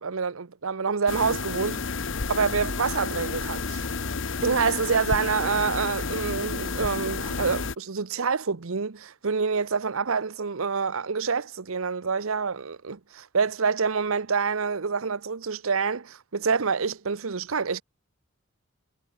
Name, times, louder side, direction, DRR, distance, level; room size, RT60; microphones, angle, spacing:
voice 1, 0.0-1.8 2.3-3.8 4.4-17.8, right 5 dB, 75° right, 0.8 m, -27 dB
sound 1, 1.1-7.7, left 4 dB, 60° left, 1.0 m, -31 dB
head